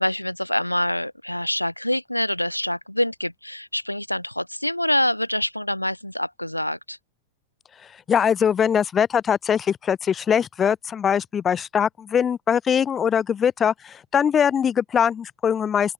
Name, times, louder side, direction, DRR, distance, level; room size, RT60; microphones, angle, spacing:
voice 1, 0.0-7.0, left 1 dB, 90° left, 0.6 m, -25 dB
voice 2, 8.1-15.9, left 8 dB, 20° left, 1.6 m, -22 dB
open air
figure-of-eight pair, 90°, 0 cm